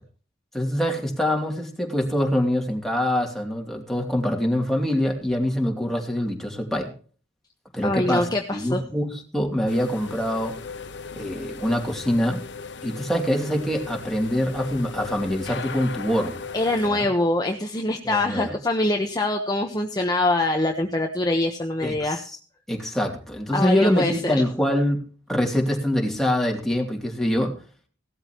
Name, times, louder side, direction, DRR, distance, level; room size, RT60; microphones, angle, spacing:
voice 1, 0.5-6.9 7.7-10.5 11.1-12.4 12.8-16.4 16.8-17.1 18.0-18.6 21.8-22.4 22.7-25.0 25.3-27.5, equal, ahead, 1 dB, 2.7 m, -24 dB
voice 2, 7.8-8.8 16.5-22.2 23.5-24.4, left 2 dB, 20° left, 3 dB, 1.1 m, -24 dB
sound 1, 9.7-16.9, left 5 dB, 75° left, 1.0 m, -37 dB
17.5 x 13.0 x 3.0 m, 0.41 s
head